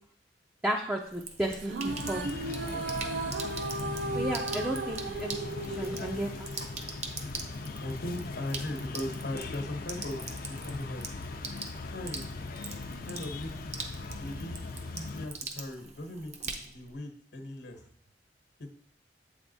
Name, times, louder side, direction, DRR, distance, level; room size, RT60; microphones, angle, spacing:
voice 1, 0.6-2.3 4.1-6.5, right 1 dB, 10° right, 0 dB, 0.4 m, -33 dB
Sink (filling or washing), 1.0-17.0, right 4 dB, 40° right, 0.7 m, -43 dB
sound 1, 1.6-7.1, right 2 dB, 75° right, 0.5 m, -36 dB
sound 2, 1.9-15.3, left 3 dB, 55° left, 0.5 m, -40 dB
voice 2, 7.8-11.0 11.9-12.3 13.0-13.7 14.2-14.6 14.9-17.8 18.6-18.7, left 1 dB, 70° left, 4 dB, 1.0 m, -38 dB
8.0 x 3.5 x 4.0 m, 0.63 s
head